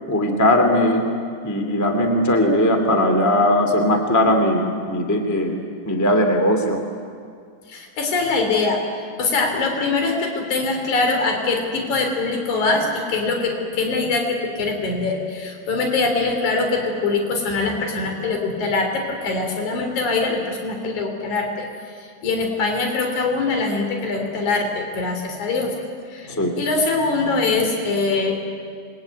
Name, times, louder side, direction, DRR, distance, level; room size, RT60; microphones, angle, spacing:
voice 1, 0.1-1.1 1.4-5.6 5.9-6.8 26.4-26.5, left 1 dB, 5° left, 4 dB, 1.9 m, -19 dB
voice 2, 7.7-21.7 22.0-25.7 26.1-28.4, left 3 dB, 60° left, 3 dB, 4.8 m, -23 dB
27.0 x 22.5 x 9.4 m, 2.3 s
omnidirectional pair, 3.8 m